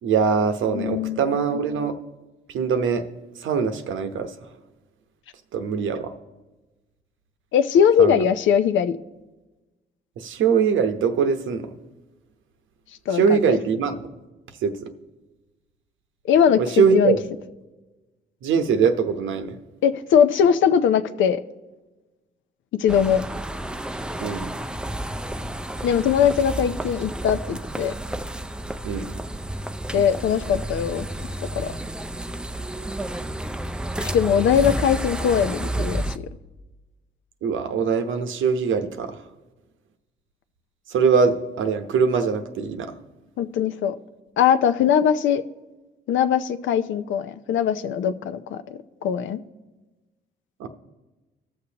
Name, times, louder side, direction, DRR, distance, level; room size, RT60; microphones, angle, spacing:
voice 1, 0.0-1.9 2.5-3.0 3.4-4.3 5.5-6.1 8.0-8.2 10.2-11.7 13.1-14.1 14.6-14.9 16.6-17.2 18.4-19.6 24.2-24.5 28.8-29.1 37.4-39.2 40.9-42.9 50.6-50.7, right 6 dB, 75° right, 8 dB, 0.9 m, -22 dB
voice 2, 0.7-1.2 7.5-9.0 13.1-13.6 16.2-17.2 19.8-21.4 22.8-23.2 25.8-27.9 29.9-31.1 31.5-31.7 34.0-36.3 43.4-44.0 44.4-45.4 46.1-49.4, left 8 dB, 75° left, 11 dB, 0.6 m, -21 dB
sound 1, 22.9-36.2, right 1 dB, 5° right, 0.4 m, -31 dB
19.0 x 6.6 x 2.9 m, 1.1 s
cardioid pair, 90°, 20 cm